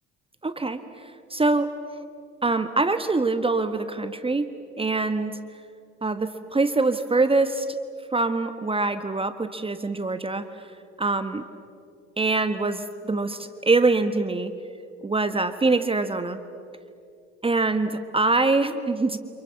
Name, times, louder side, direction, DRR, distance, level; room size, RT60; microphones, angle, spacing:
voice 1, 0.4-1.7 2.4-4.5 4.8-5.4 6.0-7.8 8.1-10.5 11.0-11.4 12.2-14.5 15.0-16.4 17.4-19.2, right 3 dB, 15° right, 10 dB, 1.5 m, -24 dB
29.5 x 28.0 x 7.1 m, 2.4 s
hypercardioid pair, 60°, 33 cm